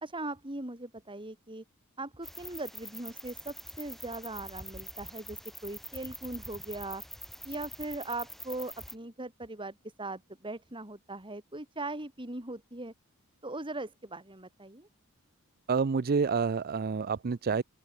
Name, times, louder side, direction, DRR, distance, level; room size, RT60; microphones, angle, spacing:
voice 1, 0.0-1.6 2.0-7.0 7.4-12.9 13.4-14.9, right 2 dB, 20° right, 3.1 m, -40 dB
sound 1, 2.2-8.9, left 1 dB, ahead, 1.2 m, -45 dB
voice 2, 15.7-17.6, right 5 dB, 45° right, 0.5 m, -28 dB
open air
head